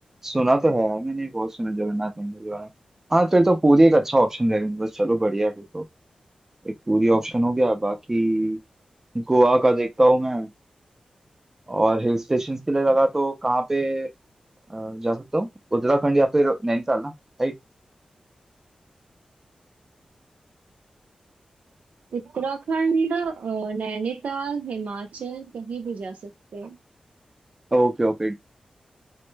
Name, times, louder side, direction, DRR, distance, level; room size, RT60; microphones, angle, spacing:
voice 1, 0.2-2.7 3.1-5.8 6.7-8.6 9.1-10.5 11.7-14.1 14.7-17.1 17.4-17.5 27.7-28.3, right 1 dB, 15° right, 0.4 m, -21 dB
voice 2, 22.1-26.8, right 5 dB, 80° right, 0.5 m, -28 dB
2.1 x 2.0 x 3.1 m
wide cardioid pair, 125°, 2 cm